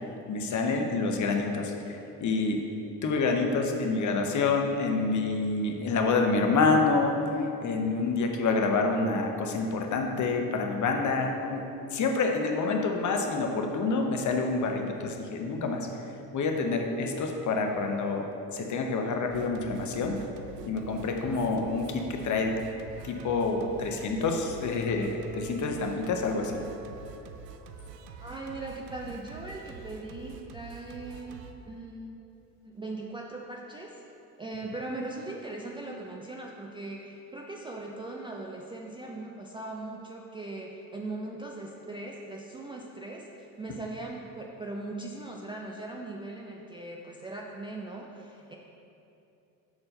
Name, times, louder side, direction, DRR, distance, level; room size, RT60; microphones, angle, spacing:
voice 1, 0.3-2.6 3.0-11.6 11.9-15.9 16.3-20.2 20.7-22.5 23.0-26.6, left 3 dB, 40° left, 3 dB, 0.9 m, -27 dB
Singing, 19.3-31.5, right 5 dB, 85° right, 0.6 m, -46 dB
voice 2, 28.2-32.2 32.6-34.0 34.4-48.6, right 2 dB, 10° right, -2 dB, 0.4 m, -39 dB
5.7 x 4.4 x 5.4 m, 2.8 s
hypercardioid pair, 70°, 48 cm